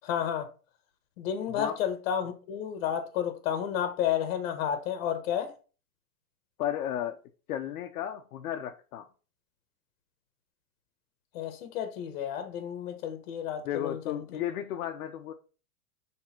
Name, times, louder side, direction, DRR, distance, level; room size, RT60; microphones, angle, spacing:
voice 1, 0.0-0.5 1.2-5.5 11.3-14.4, left 9 dB, 40° left, 1.3 m, -31 dB
voice 2, 6.6-7.2 7.5-9.1 13.6-15.3, left 10 dB, 70° left, 0.8 m, -34 dB
6.4 x 3.6 x 4.4 m
supercardioid pair, 165°, 45 cm